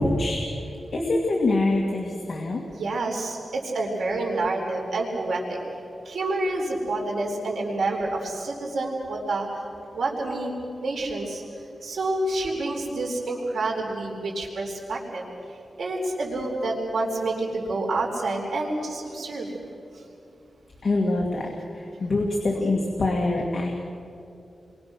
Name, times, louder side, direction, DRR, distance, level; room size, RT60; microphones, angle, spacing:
voice 1, 0.0-2.6 20.8-23.7, left 2 dB, 45° left, -1 dB, 2.4 m, -25 dB
voice 2, 2.7-5.6 6.0-9.5 9.9-10.5 10.8-11.4 11.8-15.2 15.8-19.5, right 2 dB, 85° right, -1 dB, 4.4 m, -28 dB
30.0 x 23.5 x 6.3 m, 2.7 s
wide cardioid pair, 160°, 0 cm